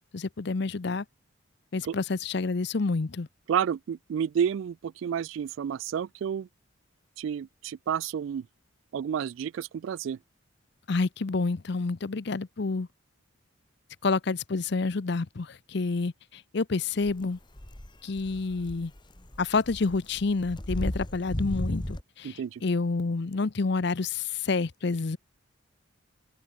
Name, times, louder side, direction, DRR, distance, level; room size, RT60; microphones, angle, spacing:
voice 1, 0.1-1.0 1.7-3.3 10.9-12.9 14.0-17.4 18.0-18.9 19.4-25.2, left 3 dB, 55° left, 0.6 m, -28 dB
voice 2, 3.5-6.5 7.2-8.5 8.9-10.2 22.2-22.6, right 8 dB, 70° right, 0.3 m, -30 dB
sound 1, 17.0-17.2 17.6-22.0, left 1 dB, 20° left, 1.5 m, -35 dB
open air
head